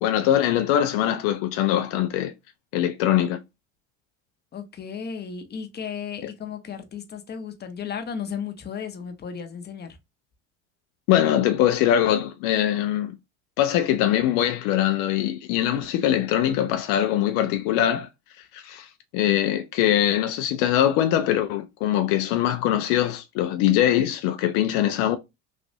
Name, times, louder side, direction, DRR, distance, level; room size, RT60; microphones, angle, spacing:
voice 1, 0.0-2.3 2.7-3.4 11.1-13.1 13.6-18.1 18.5-25.2, left 11 dB, 70° left, 0.5 m, -22 dB
voice 2, 4.5-10.0, left 7 dB, 30° left, 0.7 m, -34 dB
3.1 x 2.5 x 2.6 m
hypercardioid pair, 80°, 35 cm